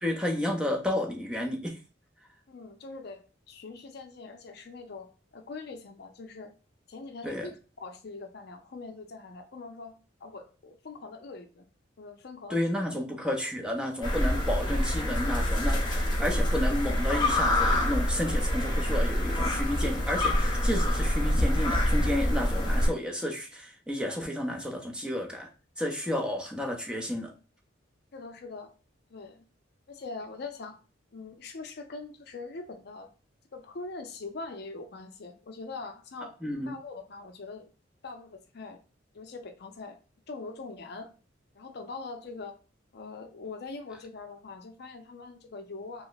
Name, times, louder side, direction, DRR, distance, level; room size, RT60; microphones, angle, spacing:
voice 1, 0.0-1.8 7.2-7.5 12.5-25.5 25.8-27.3 36.4-36.7, left 1 dB, 5° right, 0.5 m, -31 dB
voice 2, 2.5-6.5 6.9-11.6 12.0-12.6 28.1-28.7 29.1-29.4 29.9-30.8 31.1-33.1 33.5-36.4 36.7-37.7 38.0-38.8 39.1-40.0 40.3-41.1 41.5-42.6 42.9-46.1, left 3 dB, 55° left, 0.5 m, -42 dB
sound 1, 14.0-22.9, left 1 dB, 25° left, 0.8 m, -26 dB
3.0 x 2.1 x 3.9 m
head